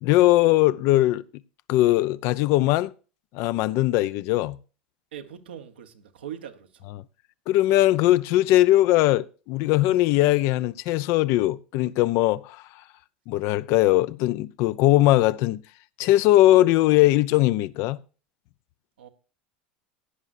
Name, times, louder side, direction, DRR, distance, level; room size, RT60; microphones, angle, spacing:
voice 1, 0.0-1.2 1.7-2.9 3.3-4.6 7.5-12.6 13.3-15.6 16.0-18.0, left 16 dB, 60° left, 0.5 m, -20 dB
voice 2, 5.1-6.9 19.0-19.1, right 9 dB, 85° right, 1.1 m, -41 dB
16.5 x 10.0 x 2.6 m
hypercardioid pair, 90°, 5 cm